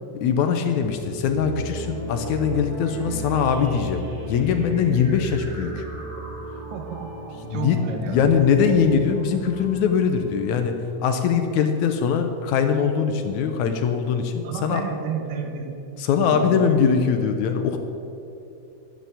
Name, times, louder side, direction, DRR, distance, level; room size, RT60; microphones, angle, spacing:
voice 1, 0.1-5.9 7.5-7.8 8.1-14.8 16.0-17.8, left 6 dB, 75° left, 6 dB, 1.9 m, -22 dB
sound 1, 0.8-11.0, right 1 dB, 30° right, 3.2 m, -35 dB
voice 2, 6.7-8.2 14.4-15.8 16.2-16.7 17.0-17.2, right 6 dB, 85° right, 4 dB, 3.0 m, -32 dB
12.0 x 7.6 x 8.3 m, 2.9 s
omnidirectional pair, 3.8 m